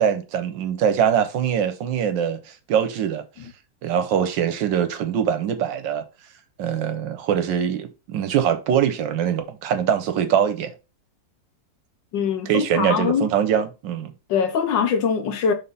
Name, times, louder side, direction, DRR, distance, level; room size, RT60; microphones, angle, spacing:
voice 1, 0.0-3.2 3.8-6.0 6.6-10.7 12.5-14.1, right 8 dB, 80° right, 1.6 m, -23 dB
voice 2, 12.1-13.3 14.3-15.5, left 6 dB, 85° left, 1.6 m, -22 dB
5.8 x 3.7 x 5.3 m
omnidirectional pair, 2.0 m